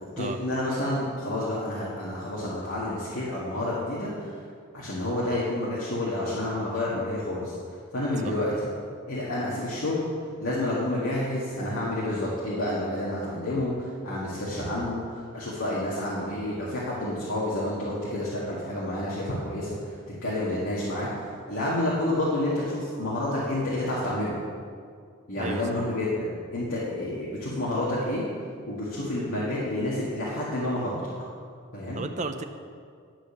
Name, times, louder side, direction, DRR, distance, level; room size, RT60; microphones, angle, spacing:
voice 1, 0.2-4.4 4.7-7.5 7.9-8.7 9.1-10.1 10.4-15.0 15.3-19.9 20.2-21.1 21.5-24.4 25.3-28.2 28.6-31.0 31.7-32.0, left 1 dB, 80° left, -8 dB, 1.9 m, -29 dB
voice 2, 31.9-32.4, right 3 dB, 35° right, 8 dB, 0.5 m, -32 dB
11.0 x 5.3 x 7.1 m, 2.2 s
head